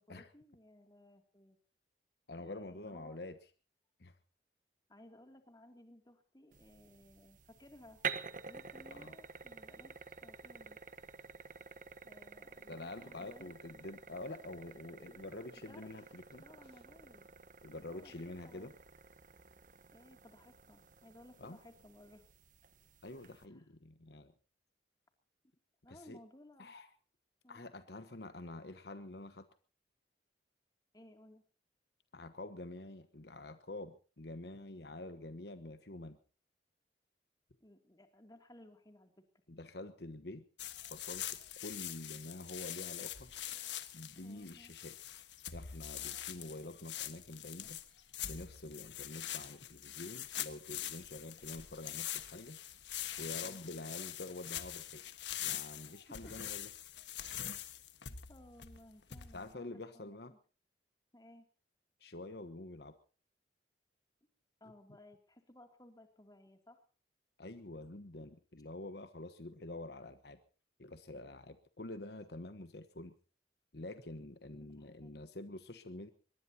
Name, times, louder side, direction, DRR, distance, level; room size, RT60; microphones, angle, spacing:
voice 1, 0.0-1.6 2.4-3.2 4.9-8.0 8.4-10.0 10.2-10.8 12.0-13.5 14.9-15.9 16.4-17.3 17.9-18.7 19.9-22.3 23.2-23.6 25.8-26.7 27.4-27.7 30.9-31.4 37.6-39.1 44.2-44.7 53.4-53.8 55.8-56.0 56.2-56.3 57.2-57.7 58.1-60.4 61.1-61.5 64.6-66.8 74.6-75.1, left 1 dB, 20° left, 5 dB, 2.7 m, -59 dB
voice 2, 2.3-3.4 4.0-4.2 8.9-9.1 12.7-16.4 17.6-18.7 21.4-21.6 23.0-24.3 25.9-26.2 26.6-26.9 27.5-29.4 32.1-36.2 39.5-40.4 40.8-43.3 43.9-45.2 45.5-47.8 48.3-52.6 53.2-55.0 55.4-56.7 59.3-60.3 62.0-62.9 67.4-70.4 70.8-73.1 73.7-76.1, left 2 dB, 65° left, 10 dB, 1.2 m, -47 dB
sound 1, 6.5-23.4, right 6 dB, 45° right, 1.2 m, -49 dB
sound 2, 40.6-59.5, left 11 dB, 85° left, 1.5 m, -44 dB
23.5 x 21.0 x 2.9 m, 0.38 s
head